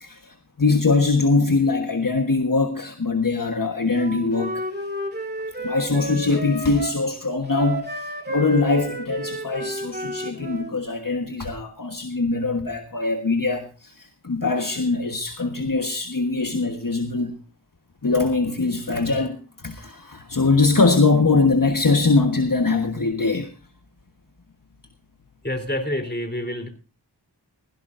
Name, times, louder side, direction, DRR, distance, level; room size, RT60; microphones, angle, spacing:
voice 1, 0.0-4.6 5.6-17.3 18.0-23.5, left 3 dB, 50° left, 1.4 m, -22 dB
Wind instrument woodwind instrument, 3.9-7.0 7.5-10.7, right 1 dB, 25° right, 2.7 m, -32 dB
voice 2, 25.4-26.7, left 1 dB, 25° left, 3.6 m, -27 dB
17.0 x 15.5 x 2.6 m
wide cardioid pair, 45°, 41 cm